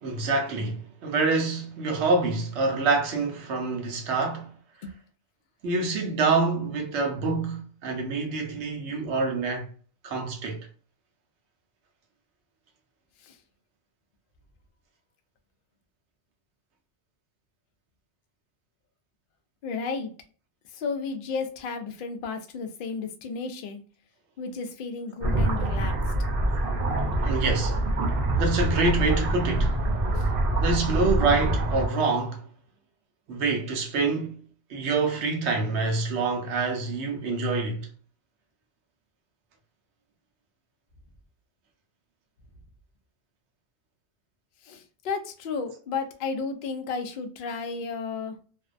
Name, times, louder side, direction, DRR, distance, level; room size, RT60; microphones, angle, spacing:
voice 1, 0.0-4.5 5.6-9.7 10.0-10.7 27.0-27.8 28.4-29.8 30.6-32.4 33.3-34.4 34.7-37.9, right 3 dB, 80° right, 1.0 m, -26 dB
voice 2, 19.6-20.1 20.7-23.8 24.4-25.9 30.1-30.3 44.6-48.3, left 4 dB, 60° left, 0.6 m, -33 dB
sound 1, 25.2-31.9, right 1 dB, 60° right, 0.8 m, -25 dB
2.5 x 2.1 x 2.4 m
omnidirectional pair, 1.2 m